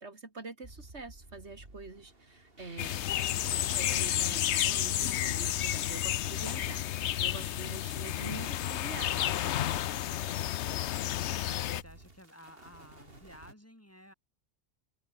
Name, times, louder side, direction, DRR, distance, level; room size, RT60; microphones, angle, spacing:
voice 1, 0.0-3.0 3.2-3.3 3.6-9.4, right 3 dB, 70° right, 2.9 m, -45 dB
sound 1, 0.6-7.7 8.5-9.3 9.7-13.5, right 2 dB, 55° right, 4.5 m, -56 dB
sound 2, 2.8-11.8, left 12 dB, 75° left, 0.9 m, -31 dB
voice 2, 11.8-14.1, equal, 10° left, 5.5 m, -55 dB
omnidirectional pair, 1.2 m